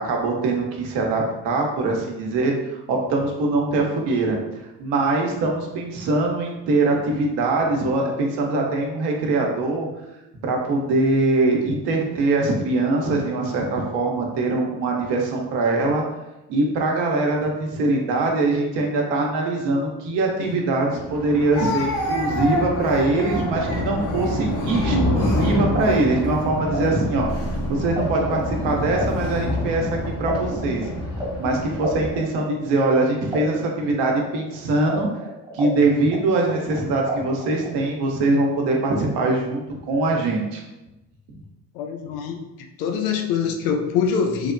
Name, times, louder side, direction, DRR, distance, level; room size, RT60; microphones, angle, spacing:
voice 1, 0.0-9.9 10.4-16.0 16.5-27.3 27.7-30.8 31.4-35.1 35.5-40.6, right 2 dB, 70° right, 0.8 m, -22 dB
Speech, 20.4-20.5 21.5-26.4 27.2-27.5 28.4-29.0, left 1 dB, 60° left, 1.0 m, -31 dB
Thunder, 20.9-32.1, left 1 dB, 35° left, 0.6 m, -27 dB
sound 1, 25.1-28.0 28.3-33.0 33.3-35.8 36.1-37.8, right 1 dB, 10° right, 0.7 m, -33 dB
voice 2, 41.7-42.4 42.8-44.5, left 6 dB, 75° left, 0.5 m, -24 dB
3.2 x 2.1 x 2.5 m
hypercardioid pair, 55°, 45 cm